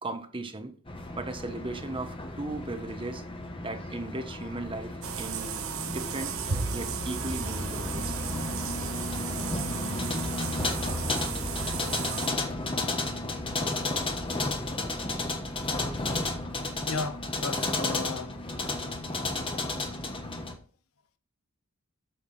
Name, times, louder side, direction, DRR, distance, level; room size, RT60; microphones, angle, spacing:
voice 1, 0.0-0.7 1.1-3.2 3.6-6.4 6.7-8.2 11.0-11.3, right 2 dB, 25° right, 1.2 m, -37 dB
sound 1, 0.9-20.5, left 2 dB, 25° left, 1.3 m, -33 dB
sound 2, 5.0-12.3, right 7 dB, 80° right, 1.0 m, -35 dB
voice 2, 16.9-18.4, left 4 dB, 85° left, 0.9 m, -35 dB
9.1 x 7.1 x 4.2 m
head